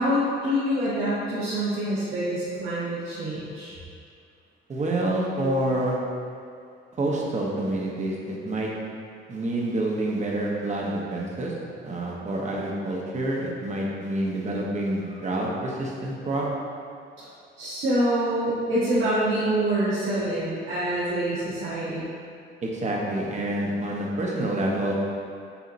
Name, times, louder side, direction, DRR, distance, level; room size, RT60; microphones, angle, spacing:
voice 1, 0.0-3.7 17.6-22.1, right 1 dB, 85° right, -11 dB, 1.1 m, -26 dB
voice 2, 4.7-6.0 6.9-8.7 9.3-11.5 11.8-16.5 22.6-25.0, right 1 dB, 35° right, -3 dB, 0.9 m, -27 dB
6.8 x 2.8 x 2.6 m, 2.3 s
cardioid pair, 90°, 20 cm